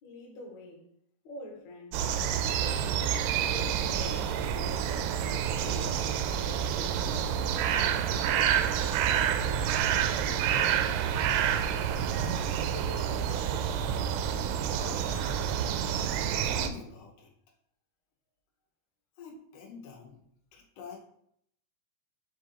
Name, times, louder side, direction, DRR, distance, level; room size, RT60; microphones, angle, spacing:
voice 1, 0.0-0.9 1.2-2.1 2.4-4.8 5.6-8.9 9.4-11.3 11.7-13.6, left 2 dB, 60° left, 2.1 m, -47 dB
sound 1, 1.9-16.7, right 9 dB, 80° right, 2.4 m, -28 dB
voice 2, 14.8-15.4 16.4-17.3 19.2-20.2 20.5-21.0, left 5 dB, 80° left, 3.1 m, -47 dB
7.0 x 2.6 x 5.7 m
omnidirectional pair, 4.7 m